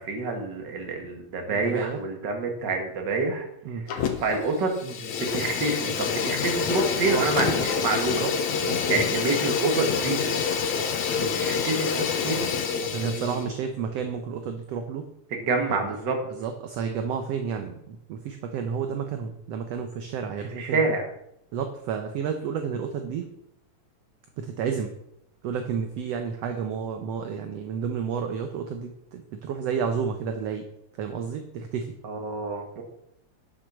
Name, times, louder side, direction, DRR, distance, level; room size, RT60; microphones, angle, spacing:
voice 1, 0.0-3.5 3.7-3.8 4.2-8.2 8.9-10.2 11.1-12.5 12.7-13.4 15.3-16.2 20.6-21.0 24.6-24.8 32.0-32.8, right 3 dB, 40° right, 4 dB, 2.0 m, -28 dB
voice 2, 1.5-2.0 3.6-3.9 7.1-7.6 8.1-8.3 8.6-9.0 12.9-15.0 15.7-16.0 16.3-20.8 21.5-23.3 24.4-24.9 25.4-30.6 31.0-31.9, right 6 dB, 70° right, 6 dB, 1.8 m, -31 dB
Fire, 3.9-4.4 4.7-13.4, left 6 dB, 75° left, 2.4 m, -27 dB
10.5 x 6.4 x 6.3 m, 0.77 s
omnidirectional pair, 3.4 m